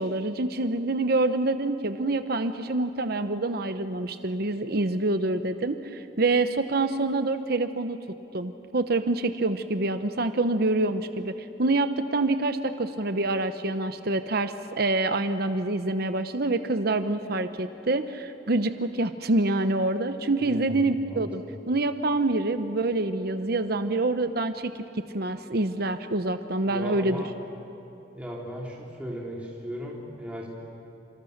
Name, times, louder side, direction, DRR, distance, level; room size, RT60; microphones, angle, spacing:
voice 1, 0.0-8.0 8.3-11.3 11.6-24.9 25.1-27.2, right 2 dB, 60° right, 9 dB, 1.0 m, -26 dB
voice 2, 20.4-21.6 26.7-27.3 28.1-30.5, equal, 10° right, -4 dB, 3.5 m, -37 dB
29.0 x 27.5 x 6.7 m, 2.8 s
head